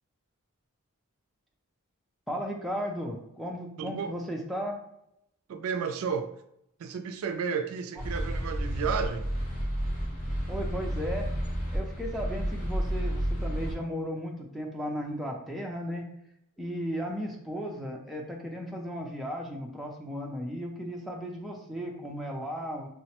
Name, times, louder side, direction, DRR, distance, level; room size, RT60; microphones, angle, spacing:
voice 1, 2.3-4.8 10.5-11.3 11.7-16.1 16.6-22.9, equal, ahead, -1 dB, 0.4 m, -35 dB
voice 2, 3.8-4.2 5.5-6.3 6.8-9.3, right 6 dB, 65° right, 8 dB, 0.3 m, -32 dB
sound 1, 8.0-13.7, equal, 35° left, 0.9 m, -31 dB
5.5 x 2.1 x 2.9 m, 0.78 s
head